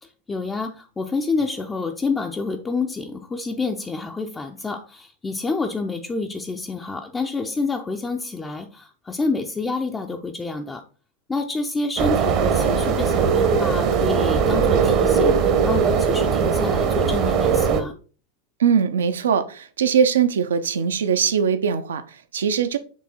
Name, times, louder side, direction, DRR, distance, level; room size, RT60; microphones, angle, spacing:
voice 1, 0.0-10.8 11.3-17.9, left 3 dB, 15° left, 0.6 m, -28 dB
sound 1, 12.0-17.8, right 6 dB, 40° right, 0.9 m, -19 dB
voice 2, 18.6-22.8, right 7 dB, 65° right, 0.7 m, -21 dB
7.4 x 3.5 x 4.2 m
figure-of-eight pair, 90°, 0 cm